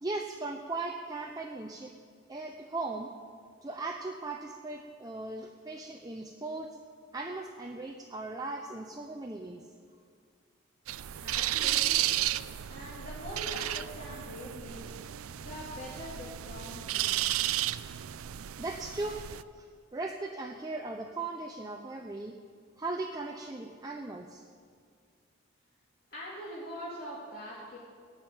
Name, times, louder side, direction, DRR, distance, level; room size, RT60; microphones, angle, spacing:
voice 1, 0.0-1.9 2.3-3.1 3.6-6.8 7.1-9.7 18.3-19.2 19.5-19.7 19.9-22.4 22.8-24.4, right 3 dB, 20° right, 2 dB, 0.6 m, -38 dB
sound 1, 10.9-19.4, right 13 dB, 90° right, 0.4 m, -33 dB
voice 2, 11.2-12.1 12.7-14.9 15.4-17.5 26.1-27.8, equal, 45° left, -6 dB, 2.5 m, -43 dB
16.0 x 8.8 x 8.9 m, 2.1 s
head